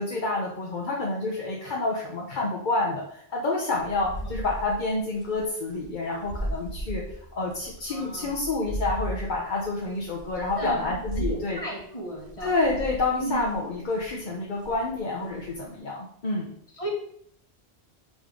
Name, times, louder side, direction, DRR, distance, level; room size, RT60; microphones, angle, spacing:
voice 1, 0.0-7.0 7.4-11.6 12.4-16.5, left 2 dB, 50° left, -2 dB, 1.0 m, -28 dB
sound 1, 3.8-11.5 12.1-14.3 14.6-15.8, right 1 dB, 90° right, 1.6 m, -36 dB
voice 2, 7.9-8.3 10.6-12.6 13.2-13.4 16.7-16.9, right 2 dB, 35° left, 0 dB, 1.3 m, -34 dB
5.2 x 5.1 x 3.7 m, 0.67 s
omnidirectional pair, 1.0 m